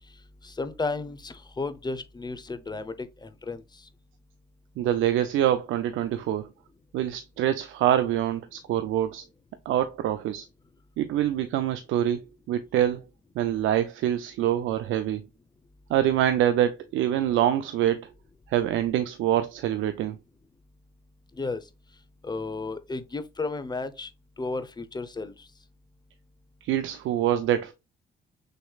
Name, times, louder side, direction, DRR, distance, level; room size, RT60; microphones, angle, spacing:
voice 1, 0.4-3.9 21.3-21.7 22.2-24.1 24.4-25.5, left 3 dB, 20° left, 0.7 m, -33 dB
voice 2, 4.8-6.5 6.9-9.2 9.7-10.5 11.0-12.2 12.5-13.0 13.4-15.2 15.9-18.1 18.5-20.2 26.6-27.7, right 11 dB, 80° right, 0.5 m, -25 dB
6.4 x 3.1 x 2.3 m
cardioid pair, 90°, 20 cm